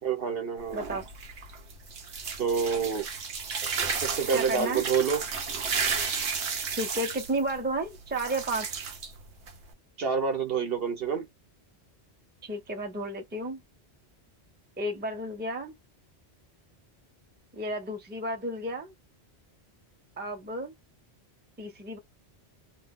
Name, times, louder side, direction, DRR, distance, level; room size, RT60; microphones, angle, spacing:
voice 1, 0.0-0.8 2.4-3.1 4.0-5.2 10.0-11.3, right 6 dB, 65° right, 1.0 m, -28 dB
sound 1, 0.6-9.7, right 5 dB, 85° right, 1.0 m, -33 dB
voice 2, 0.7-1.0 4.3-4.8 6.7-8.9 12.4-13.6 14.8-15.7 17.5-18.9 20.2-20.7 21.6-22.0, right 1 dB, 10° right, 0.6 m, -32 dB
2.5 x 2.3 x 3.5 m
omnidirectional pair, 1.1 m